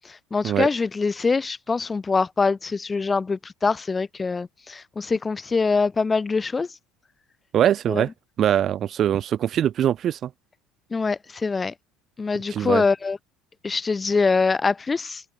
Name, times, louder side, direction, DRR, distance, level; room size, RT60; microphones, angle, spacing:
voice 1, 0.3-6.7 7.9-8.0 10.9-11.7 12.2-13.2 13.6-15.2, left 4 dB, 25° left, 0.5 m, -24 dB
voice 2, 7.5-8.1 8.4-10.3 12.5-12.8, right 10 dB, 50° right, 0.7 m, -22 dB
open air
supercardioid pair, 80°, 0 cm